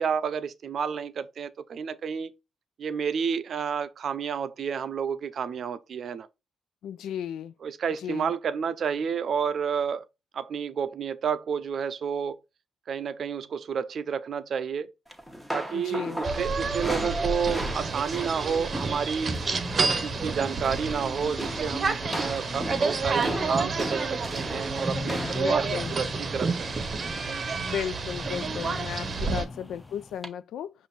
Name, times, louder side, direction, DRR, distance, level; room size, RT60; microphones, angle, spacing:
voice 1, 0.0-2.3 2.8-6.3 7.6-10.1 10.3-12.4 12.9-14.9 15.5-19.3 19.8-26.9 29.1-29.5, right 7 dB, 60° right, 0.5 m, -30 dB
voice 2, 6.8-7.5 8.0-8.3 15.7-16.2 25.4-25.9 27.6-30.7, left 9 dB, 80° left, 0.3 m, -35 dB
sound 1, 15.1-19.6 19.9-20.2 20.5-21.0 21.4-27.4 28.3-28.6 29.0-29.2 30.2-30.3, equal, 5° left, 1.2 m, -37 dB
sound 2, 16.2-29.4, right 4 dB, 40° right, 0.8 m, -29 dB
sound 3, 19.6-30.2, left 3 dB, 20° left, 0.5 m, -41 dB
5.1 x 2.6 x 4.0 m
cardioid pair, 85°, 0 cm